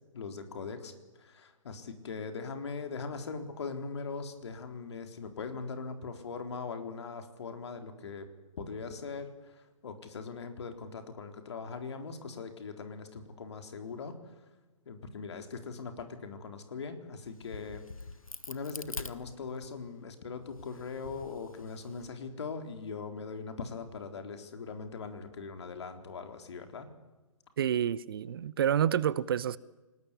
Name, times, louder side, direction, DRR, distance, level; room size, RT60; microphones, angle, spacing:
voice 1, 0.1-0.9 1.2-8.3 8.6-9.3 9.8-14.2 14.9-17.9 18.5-26.9, left 4 dB, 55° left, 4.0 m, -40 dB
Crack, 17.2-19.9 20.4-22.1, left 3 dB, 80° left, 1.5 m, -45 dB
voice 2, 27.6-29.6, right 9 dB, 45° right, 0.8 m, -28 dB
28.0 x 20.0 x 9.9 m
figure-of-eight pair, 130°, 17 cm